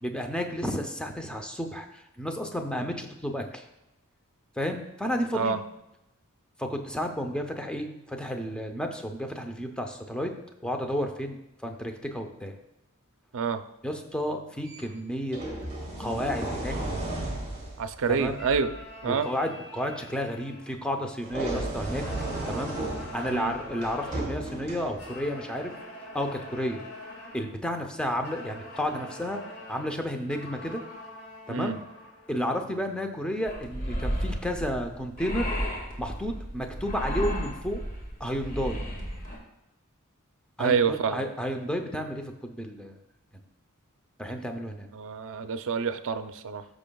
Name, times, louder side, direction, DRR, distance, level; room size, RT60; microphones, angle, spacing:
voice 1, 0.0-3.6 4.6-5.6 6.6-10.3 10.6-12.6 13.8-15.4 16.0-16.8 18.1-18.4 19.0-22.0 22.5-22.8 23.1-25.7 26.1-26.8 27.3-29.4 29.7-30.8 31.5-31.8 32.3-35.5 36.0-37.8 38.2-38.8 40.6-43.0 44.2-44.9, equal, 5° left, 4 dB, 0.6 m, -32 dB
sound 1, 14.6-14.8 15.3-18.8 21.2-25.2 26.3-26.4, right 1 dB, 30° right, 2.7 m, -34 dB
voice 2, 17.8-18.7 19.0-19.3 23.3-23.5 31.5-31.8 40.6-41.3 44.9-46.7, right 5 dB, 60° right, 10 dB, 0.5 m, -27 dB
sound 2, 18.3-21.4 21.8-24.4 24.9-27.6 28.2-32.4, left 1 dB, 90° left, 3.0 m, -45 dB
sound 3, 33.5-39.4, equal, 40° left, 1.9 m, -33 dB
14.0 x 6.2 x 2.3 m, 0.92 s
head